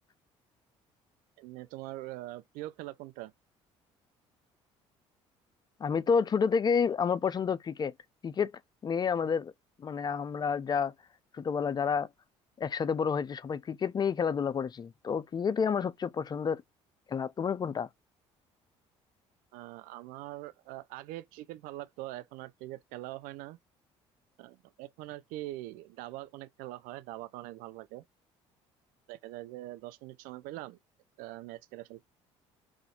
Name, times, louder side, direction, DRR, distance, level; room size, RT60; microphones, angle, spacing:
voice 1, 1.4-3.3 19.5-23.6 24.4-28.0 29.1-30.8 31.2-32.0, right 16 dB, 70° right, 0.5 m, -43 dB
voice 2, 5.8-7.9 8.2-9.5 9.8-10.9 11.3-12.1 12.6-16.6 17.1-17.9, left 6 dB, 30° left, 0.4 m, -29 dB
2.4 x 2.0 x 2.8 m
hypercardioid pair, 60°, 15 cm